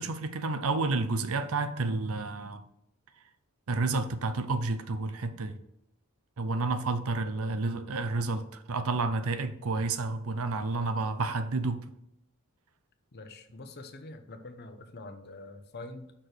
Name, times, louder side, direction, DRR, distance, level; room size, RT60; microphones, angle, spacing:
voice 1, 0.0-2.6 3.7-5.6 6.4-11.8, right 3 dB, 65° right, 0.7 m, -30 dB
voice 2, 7.2-7.6 13.1-16.1, left 2 dB, 50° left, 0.9 m, -45 dB
6.0 x 4.8 x 6.5 m
head